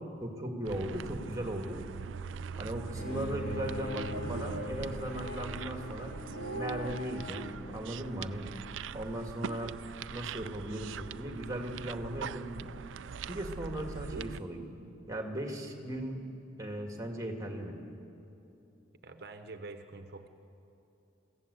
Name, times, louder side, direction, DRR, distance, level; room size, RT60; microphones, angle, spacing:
voice 1, 0.2-1.8 2.6-6.2 6.5-8.5 8.9-9.7 10.1-12.7 13.3-14.7 15.1-16.2 16.6-17.8, right 1 dB, 20° right, 3 dB, 1.9 m, -37 dB
sound 1, 0.6-14.4, right 6 dB, 90° right, 0.4 m, -41 dB
Bowed string instrument, 2.9-8.0, left 2 dB, 45° left, 1.5 m, -42 dB
voice 2, 19.0-20.3, right 3 dB, 55° right, 7 dB, 1.0 m, -46 dB
24.0 x 15.0 x 8.1 m, 2.8 s
head